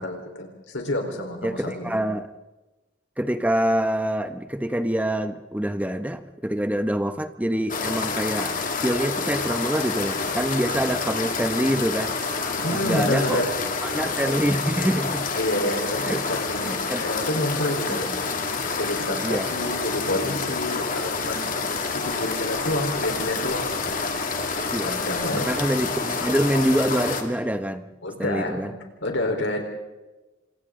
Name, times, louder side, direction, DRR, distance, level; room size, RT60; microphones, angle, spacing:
voice 1, 0.0-2.0 12.6-13.5 15.3-18.1 18.8-21.6 21.9-23.9 24.8-25.6 28.0-29.6, left 1 dB, 80° left, 3 dB, 4.2 m, -28 dB
voice 2, 1.4-2.3 3.2-8.5 8.8-12.1 12.7-13.4 13.8-15.3 15.9-16.2 16.6-17.1 17.7-18.1 19.2-19.5 24.7-25.0 25.3-27.9 28.2-28.7, equal, 10° right, 9 dB, 1.0 m, -26 dB
sound 1, 7.7-27.2, left 4 dB, 45° left, 2.4 m, -28 dB
29.5 x 26.0 x 3.8 m, 1.1 s
head